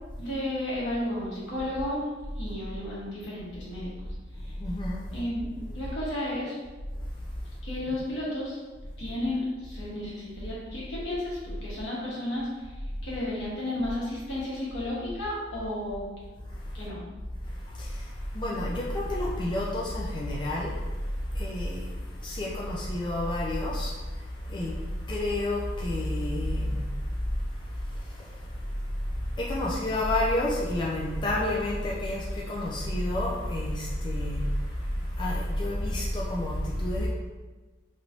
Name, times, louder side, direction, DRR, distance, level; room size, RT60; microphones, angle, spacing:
voice 1, 0.2-2.1 2.4-3.9 4.3-4.6 5.1-6.6 7.6-8.6 9.0-16.0 16.7-17.0, left 1 dB, 75° left, -7 dB, 1.2 m, -33 dB
voice 2, 4.6-5.0 16.5-16.8 17.4-37.1, left 1 dB, 25° left, -4 dB, 0.3 m, -30 dB
3.0 x 3.0 x 2.6 m, 1.3 s
head